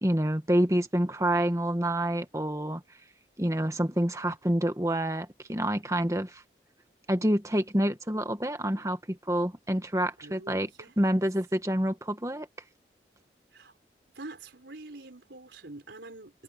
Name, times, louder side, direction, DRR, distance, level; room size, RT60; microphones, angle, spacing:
voice 1, 0.0-2.8 3.4-6.4 7.1-10.7 11.0-12.5, right 1 dB, 20° right, 1.6 m, -27 dB
voice 2, 10.2-10.9 13.5-13.7 14.1-16.4, right 2 dB, 85° right, 4.2 m, -46 dB
head